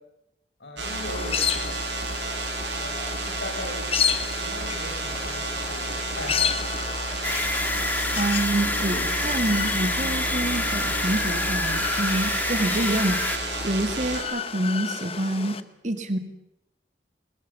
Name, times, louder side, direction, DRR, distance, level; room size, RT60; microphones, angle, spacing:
voice 1, 0.6-1.8 2.8-3.9 4.3-7.2, left 2 dB, 90° left, 2 dB, 7.0 m, -40 dB
sound 1, 0.8-15.6, left 7 dB, 35° left, 1.0 m, -32 dB
sound 2, 0.8-14.2, right 3 dB, 85° right, 3.5 m, -31 dB
sound 3, 7.2-13.4, left 2 dB, 10° left, 1.5 m, -28 dB
voice 2, 8.1-15.6 15.8-16.2, right 1 dB, 45° right, 8 dB, 2.2 m, -27 dB
21.0 x 21.0 x 7.2 m, 0.83 s
head